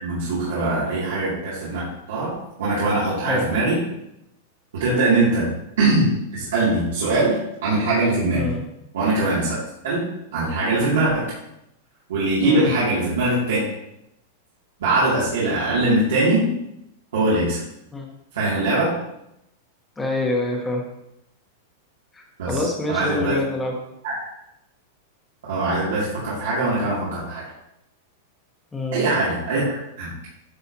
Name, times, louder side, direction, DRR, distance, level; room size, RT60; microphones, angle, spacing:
voice 1, 0.0-3.8 4.7-5.5 5.8-8.4 8.9-10.0 10.3-11.2 12.1-13.6 14.8-16.5 17.1-17.6 18.3-18.9 22.4-23.4 24.0-24.1 25.5-27.4 28.9-29.7 30.0-30.1, right 2 dB, 85° right, -9 dB, 2.6 m, -22 dB
voice 2, 8.3-8.7 12.4-12.7 17.9-18.1 20.0-20.8 22.1-23.8 28.7-29.1, left 2 dB, 10° left, 1 dB, 1.1 m, -26 dB
9.8 x 4.8 x 2.9 m, 0.82 s
supercardioid pair, 160°, 0 cm